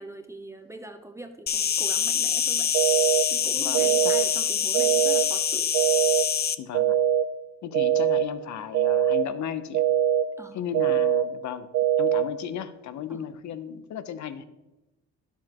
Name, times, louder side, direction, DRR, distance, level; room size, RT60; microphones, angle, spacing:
voice 1, 0.0-2.7 3.3-5.7 10.4-10.6 13.1-13.2, right 1 dB, 10° right, 6 dB, 0.7 m, -42 dB
Insect, 1.5-6.6, left 8 dB, 35° left, 0.4 m, -25 dB
sound 1, 2.7-3.2 3.7-4.2 4.7-5.2 5.7-6.2 6.7-7.2 7.7-8.2 8.7-9.2 9.7-10.2 10.7-11.2 11.7-12.2, right 10 dB, 85° right, 0.5 m, -22 dB
voice 2, 3.6-4.2 6.6-7.0 7.6-9.9 10.5-11.7 12.0-14.4, left 9 dB, 70° left, 12 dB, 0.7 m, -35 dB
11.0 x 7.1 x 2.9 m, 1.0 s
cardioid pair, 90°, 30 cm